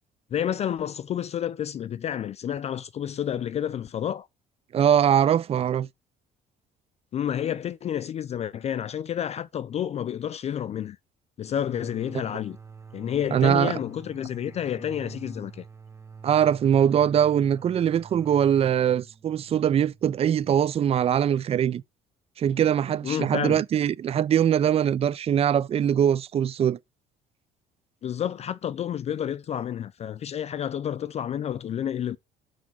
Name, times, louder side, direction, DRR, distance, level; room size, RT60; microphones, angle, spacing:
voice 1, 0.3-4.3 7.1-11.0 11.4-12.6 12.9-15.6 23.0-23.6 28.0-32.2, left 9 dB, 40° left, 0.4 m, -30 dB
voice 2, 4.7-5.9 13.3-13.8 16.2-21.8 22.4-26.8, right 9 dB, 35° right, 0.4 m, -22 dB
sound 1, 11.5-21.0, right 5 dB, 15° right, 1.2 m, -47 dB
6.0 x 4.9 x 6.0 m
cardioid pair, 110°, 17 cm